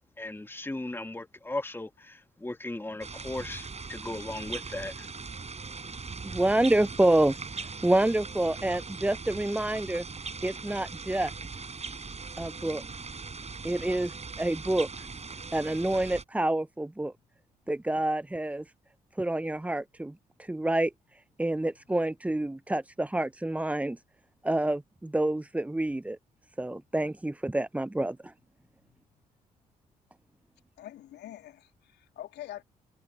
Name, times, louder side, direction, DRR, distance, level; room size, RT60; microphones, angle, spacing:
voice 1, 0.2-5.1, left 2 dB, 10° left, 1.8 m, -37 dB
sound 1, 3.0-16.2, right 4 dB, 35° right, 6.1 m, -40 dB
voice 2, 6.2-7.4 7.8-10.1 10.4-11.3 12.4-12.8 13.6-14.9 15.5-17.1 17.7-18.6 19.2-20.1 20.4-24.0 24.4-26.2 26.6-28.3, right 1 dB, 5° right, 0.6 m, -28 dB
voice 3, 30.8-32.6, left 13 dB, 65° left, 3.0 m, -44 dB
hypercardioid pair, 40°, 19 cm